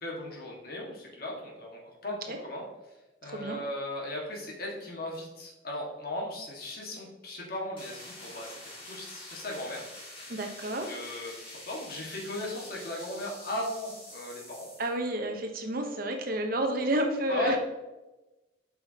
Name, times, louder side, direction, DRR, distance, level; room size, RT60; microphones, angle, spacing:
voice 1, 0.0-2.6 3.2-8.6 8.8-9.8 10.6-11.3 11.7-14.7 17.3-17.6, left 1 dB, 55° left, -2 dB, 1.8 m, -37 dB
voice 2, 3.2-3.6 10.3-11.0 14.8-17.6, right 1 dB, 50° right, 4 dB, 1.0 m, -30 dB
sound 1, 7.8-15.0, left 1 dB, 30° left, 2.1 m, -46 dB
7.6 x 5.7 x 2.9 m, 1.1 s
head